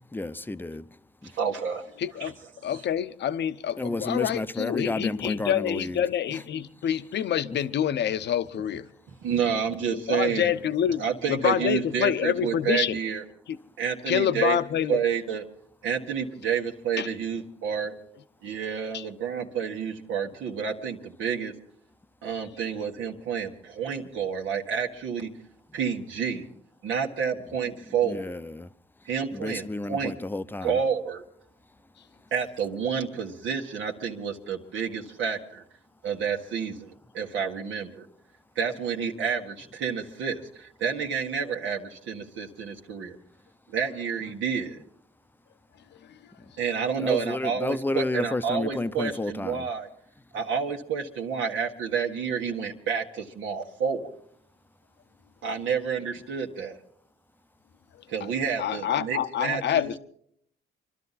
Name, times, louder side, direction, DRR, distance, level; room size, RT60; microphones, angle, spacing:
voice 1, 0.1-0.8 3.8-6.0 28.1-28.7 29.3-30.7 47.0-49.7, left 2 dB, 10° left, 0.7 m, -31 dB
voice 2, 1.3-1.9 2.2-2.3 2.7-2.8 9.2-10.5 11.0-13.2 13.8-14.6 14.9-15.4 15.8-17.9 18.4-21.5 22.2-25.3 25.7-26.5 26.8-28.3 29.1-30.1 30.6-31.2 32.3-35.6 36.0-38.1 38.6-43.2 43.7-44.8 46.6-49.9 50.3-54.1 55.4-56.8 58.1-59.9, right 7 dB, 80° right, 1.7 m, -29 dB
voice 3, 2.0-2.3 2.6-8.9 10.1-11.0 11.3-13.0 13.5-13.6 14.1-15.0 17.0-17.1 18.9-19.0 58.6-60.0, left 10 dB, 60° left, 0.8 m, -27 dB
25.5 x 12.5 x 4.1 m
cardioid pair, 90°, 20 cm